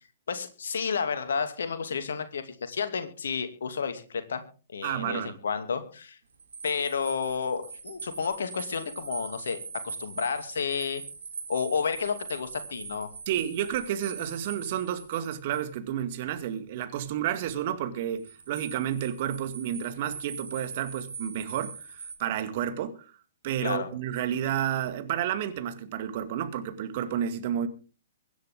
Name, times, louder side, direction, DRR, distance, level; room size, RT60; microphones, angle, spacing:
voice 1, 0.3-4.4 4.7-6.2 6.6-11.0 11.5-13.1 23.6-23.9, left 6 dB, 60° left, 2.5 m, -31 dB
voice 2, 4.8-5.4 13.3-23.1 23.4-27.7, right 10 dB, 40° right, 2.1 m, -31 dB
sound 1, 6.3-15.7 18.2-22.2, right 5 dB, 65° right, 3.7 m, -42 dB
23.5 x 10.0 x 3.7 m
figure-of-eight pair, 115°, 0 cm